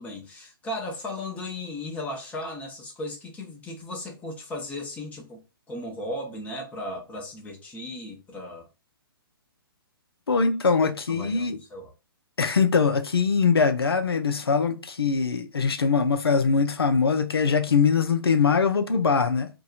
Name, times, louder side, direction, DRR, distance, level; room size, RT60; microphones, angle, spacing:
voice 1, 0.0-5.4 5.7-8.7 11.1-11.9, left 1 dB, 10° left, 0.7 m, -36 dB
voice 2, 10.3-11.6 12.4-19.5, left 5 dB, 80° left, 0.4 m, -22 dB
2.6 x 2.2 x 2.3 m
figure-of-eight pair, 125°, 13 cm